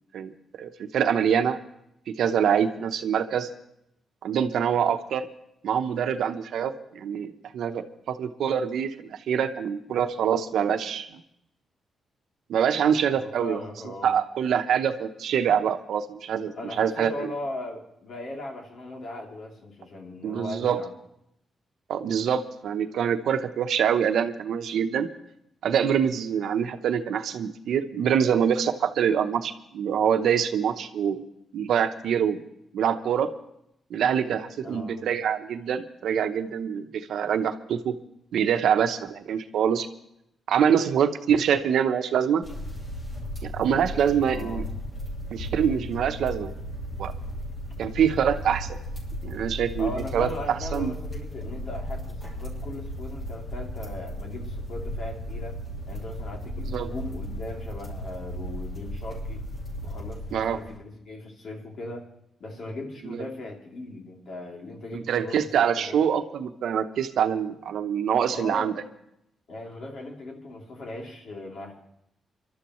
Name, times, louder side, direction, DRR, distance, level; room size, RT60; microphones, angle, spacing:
voice 1, 0.6-1.6 2.1-3.5 4.2-5.3 5.6-11.2 12.5-13.6 14.0-17.3 20.2-20.8 21.9-25.1 25.6-31.2 31.5-32.4 32.7-33.3 33.9-37.9 38.3-39.9 40.5-42.4 43.4-44.6 45.3-46.5 47.0-47.1 47.8-48.8 49.2-50.9 56.7-56.9 60.3-60.6 63.1-63.2 64.9-68.7, right 8 dB, 80° right, 8 dB, 0.9 m, -25 dB
voice 2, 13.1-14.2 16.6-20.9 34.6-35.0 44.2-44.7 49.8-55.6 55.9-59.4 59.8-62.1 62.4-66.0 68.3-68.8 69.5-71.8, left 2 dB, 60° left, 0 dB, 3.0 m, -38 dB
sound 1, 42.4-60.8, equal, 40° left, 6.4 m, -35 dB
27.5 x 12.5 x 3.1 m, 0.77 s
cardioid pair, 95°, 0 cm